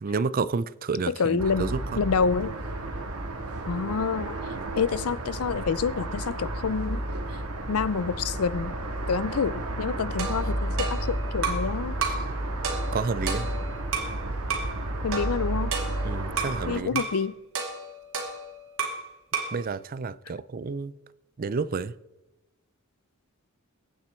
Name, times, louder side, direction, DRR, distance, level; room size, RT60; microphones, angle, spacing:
voice 1, 0.0-1.8 4.5-4.7 12.9-13.5 16.0-17.0 19.5-21.0 21.4-21.9, right 4 dB, 40° right, 0.4 m, -30 dB
voice 2, 1.1-1.7 2.0-2.5 3.6-4.4 4.8-7.0 7.7-8.7 9.1-12.0 15.0-15.7 16.7-17.3, left 5 dB, 80° left, 0.5 m, -27 dB
sound 1, 1.4-16.8, right 1 dB, 85° right, 2.1 m, -32 dB
sound 2, 10.2-11.7 12.0-12.3 12.6-14.2 14.5-14.7 15.1-16.6 17.0-17.2 17.5-19.1 19.3-19.6, right 4 dB, 65° right, 2.5 m, -32 dB
22.0 x 9.1 x 4.4 m
head